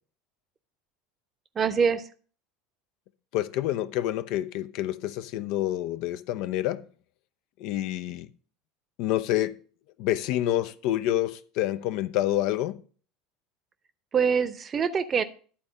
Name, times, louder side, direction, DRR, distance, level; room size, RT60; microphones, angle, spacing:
voice 1, 1.5-2.1 14.1-15.2, right 6 dB, 30° right, 0.8 m, -24 dB
voice 2, 3.3-6.8 7.6-8.3 9.0-9.6 10.0-12.8, left 13 dB, 55° left, 0.4 m, -28 dB
11.0 x 4.3 x 6.3 m
figure-of-eight pair, 70°, 0 cm